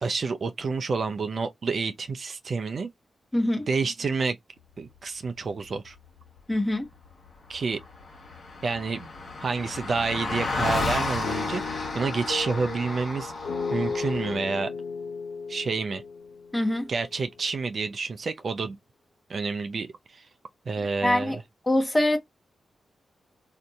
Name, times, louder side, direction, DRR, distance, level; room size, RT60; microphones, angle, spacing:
voice 1, 0.0-2.9 3.7-4.4 4.8-6.0 7.5-7.8 8.6-9.1 9.4-13.3 13.7-14.7 15.5-16.0 16.9-18.8 19.3-20.3 20.7-21.4, right 4 dB, 60° right, 0.4 m, -29 dB
voice 2, 3.3-3.7 6.5-6.9 16.5-16.9 21.0-21.4 21.7-22.2, left 1 dB, 20° left, 1.0 m, -23 dB
Car passing by, 7.2-7.3 7.5-14.3, left 3 dB, 70° left, 1.3 m, -32 dB
sound 1, 11.2-17.3, left 5 dB, 90° left, 0.7 m, -35 dB
2.7 x 2.6 x 2.3 m
supercardioid pair, 45°, 0 cm